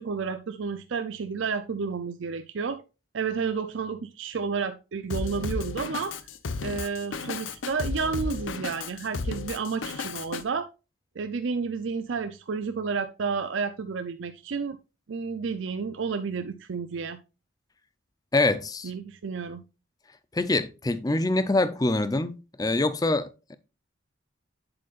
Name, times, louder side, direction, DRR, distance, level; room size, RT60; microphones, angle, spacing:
voice 1, 0.0-2.8 3.1-6.2 6.6-10.7 11.2-14.8 15.1-17.2 18.8-19.6, right 5 dB, 75° right, 0.5 m, -31 dB
Drum kit, 5.1-10.4, left 4 dB, 90° left, 0.7 m, -33 dB
voice 2, 18.3-18.9 20.3-23.6, left 2 dB, 20° left, 0.5 m, -25 dB
7.9 x 7.4 x 2.4 m
head